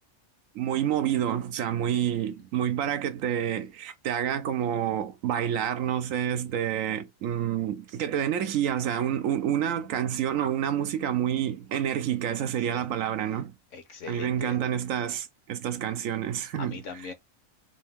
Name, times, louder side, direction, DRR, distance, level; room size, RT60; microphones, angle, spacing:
voice 1, 0.5-13.5 14.1-16.8, right 10 dB, 75° right, 1.0 m, -28 dB
voice 2, 13.7-14.6 16.6-17.1, left 5 dB, 65° left, 1.3 m, -40 dB
3.7 x 2.7 x 3.5 m
omnidirectional pair, 1.4 m